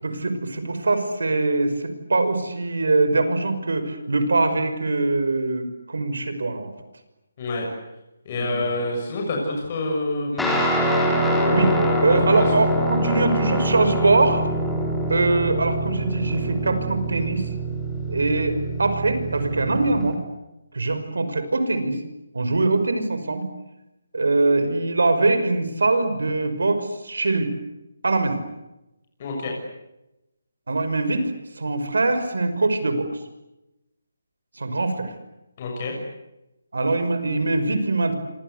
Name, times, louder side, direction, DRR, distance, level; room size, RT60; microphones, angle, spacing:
voice 1, 0.0-6.7 8.3-8.7 11.5-11.7 12.0-14.5 15.1-17.4 18.1-20.2 20.7-22.0 22.3-23.4 24.1-27.5 28.0-28.4 30.7-33.1 34.6-35.1 36.7-38.1, right 2 dB, 85° right, 10 dB, 5.7 m, -22 dB
voice 2, 8.2-10.5 11.4-12.2 29.2-29.5 35.6-35.9, left 2 dB, 30° left, 0 dB, 6.8 m, -27 dB
Guitar, 10.4-20.1, right 1 dB, 5° left, 3.7 m, -24 dB
28.5 x 25.5 x 8.2 m, 0.94 s
hypercardioid pair, 170°, 0 cm